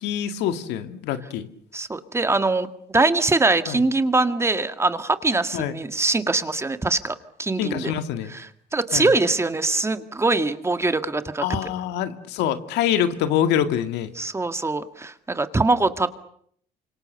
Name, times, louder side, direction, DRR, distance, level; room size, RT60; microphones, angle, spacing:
voice 1, 0.0-1.5 3.7-3.8 5.5-5.8 7.6-8.3 8.9-9.1 11.4-14.1, left 10 dB, 90° left, 9 dB, 2.0 m, -25 dB
voice 2, 1.7-7.9 8.3-8.5 8.7-11.4 14.2-16.1, right 3 dB, 15° right, 9 dB, 1.8 m, -23 dB
28.0 x 26.0 x 6.8 m, 0.65 s
cardioid pair, 110°, 17 cm